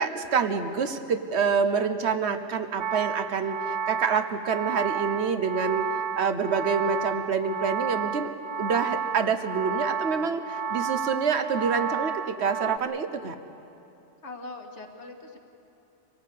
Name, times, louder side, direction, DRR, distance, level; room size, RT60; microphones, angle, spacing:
voice 1, 0.0-5.9 6.2-8.3 8.6-13.3, right 5 dB, 65° right, 9 dB, 1.3 m, -27 dB
sound 1, 2.8-12.8, right 7 dB, 90° right, 1.0 m, -31 dB
voice 2, 14.2-15.4, left 2 dB, 75° left, 3 dB, 2.1 m, -41 dB
25.5 x 17.5 x 8.5 m, 2.8 s
omnidirectional pair, 1.2 m